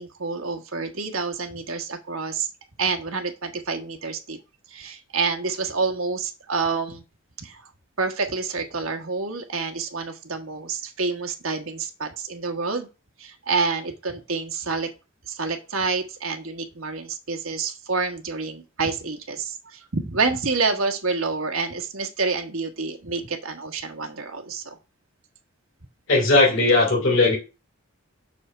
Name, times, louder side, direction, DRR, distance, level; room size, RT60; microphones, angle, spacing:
voice 1, 0.0-2.5 2.8-4.4 4.7-7.0 7.4-7.6 8.0-12.9 13.2-14.9 15.3-24.8, right 4 dB, 75° right, 4 dB, 1.3 m, -28 dB
voice 2, 26.1-27.4, left 2 dB, 60° left, -3 dB, 2.9 m, -18 dB
6.3 x 3.5 x 5.4 m, 0.30 s
head